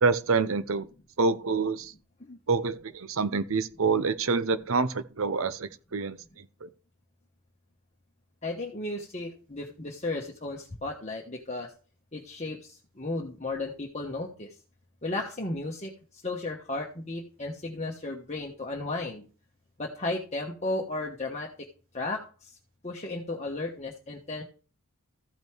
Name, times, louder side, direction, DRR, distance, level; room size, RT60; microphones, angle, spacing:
voice 1, 0.0-0.9 1.2-1.9 2.5-6.7, right 4 dB, 70° right, 0.8 m, -27 dB
voice 2, 8.4-11.7 12.1-14.5 15.0-15.9 16.2-19.3 19.8-21.5 21.9-22.5 22.8-24.4, left 2 dB, 30° left, 1.3 m, -34 dB
14.5 x 5.4 x 4.6 m
head